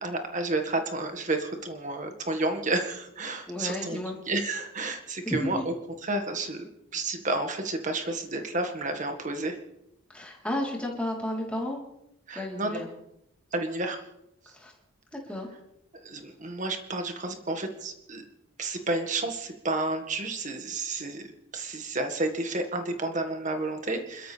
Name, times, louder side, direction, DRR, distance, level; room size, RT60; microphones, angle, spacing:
voice 1, 0.0-4.0 4.3-5.7 6.0-9.6 12.3-12.8 13.5-14.0 16.0-18.3 18.6-21.2 21.5-24.3, right 2 dB, 35° right, 5 dB, 1.8 m, -31 dB
voice 2, 3.5-4.2 5.3-5.7 10.1-11.8 12.3-12.9 14.5-14.7 15.1-15.5, left 1 dB, 5° left, -3 dB, 3.6 m, -32 dB
28.5 x 13.0 x 3.4 m, 0.83 s
head